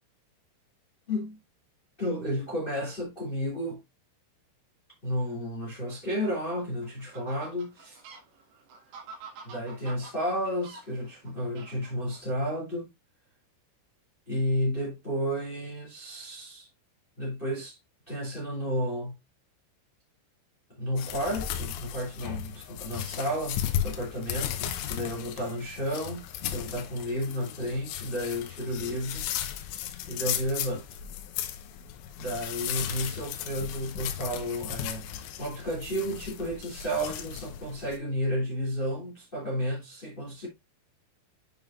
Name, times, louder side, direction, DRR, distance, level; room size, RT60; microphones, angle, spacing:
voice 1, 1.1-1.4 2.0-3.8 5.0-8.0 9.4-12.9 14.3-16.7 17.2-17.8 18.1-19.1 20.7-29.3 30.1-30.8 32.2-40.5, equal, 35° left, 0.8 m, -32 dB
Fowl, 6.1-12.2, right 4 dB, 65° right, 3.2 m, -49 dB
sound 1, 21.0-38.0, left 10 dB, 75° left, 3.1 m, -36 dB
9.1 x 5.4 x 2.4 m
omnidirectional pair, 5.8 m